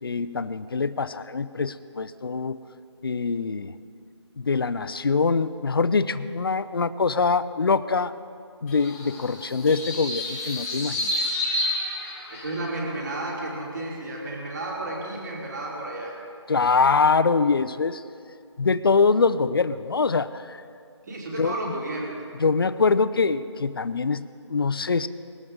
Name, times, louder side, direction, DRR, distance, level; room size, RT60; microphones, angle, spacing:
voice 1, 0.0-2.6 3.0-3.7 4.4-8.1 8.6-11.1 16.5-18.0 18.6-20.6 21.4-21.8 22.4-25.1, left 4 dB, 50° left, 14 dB, 0.5 m, -24 dB
sound 1, 8.7-12.7, left 1 dB, 5° left, 0.8 m, -30 dB
voice 2, 12.3-16.2 21.1-22.2, right 2 dB, 40° right, -2 dB, 2.9 m, -32 dB
20.5 x 13.0 x 3.8 m, 2.4 s
figure-of-eight pair, 170°, 15 cm